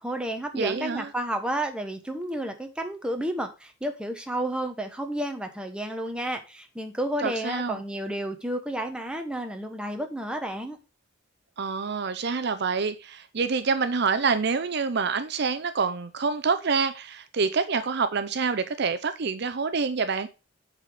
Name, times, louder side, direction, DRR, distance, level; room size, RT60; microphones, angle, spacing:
voice 1, 0.0-10.8, right 1 dB, 5° right, 1.0 m, -31 dB
voice 2, 0.5-1.1 7.2-7.8 11.6-20.3, right 5 dB, 55° right, 0.6 m, -27 dB
8.1 x 4.2 x 4.8 m
head